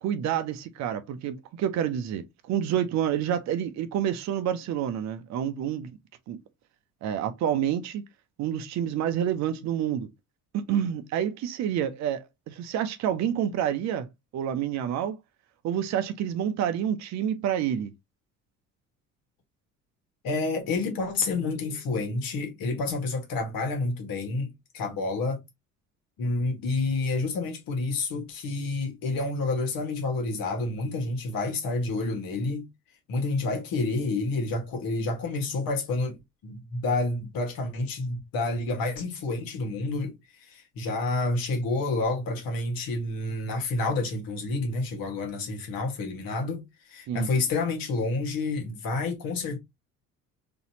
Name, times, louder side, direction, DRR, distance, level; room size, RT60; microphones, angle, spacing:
voice 1, 0.0-5.9 6.3-6.4 7.0-8.0 8.4-10.1 10.5-15.2 15.6-17.9 47.1-47.3, right 9 dB, 40° right, 0.7 m, -28 dB
voice 2, 20.2-25.4 26.2-32.7 33.1-40.1 40.4-49.6, left 3 dB, 50° left, 1.4 m, -29 dB
4.0 x 2.9 x 2.8 m
figure-of-eight pair, 55°, 43 cm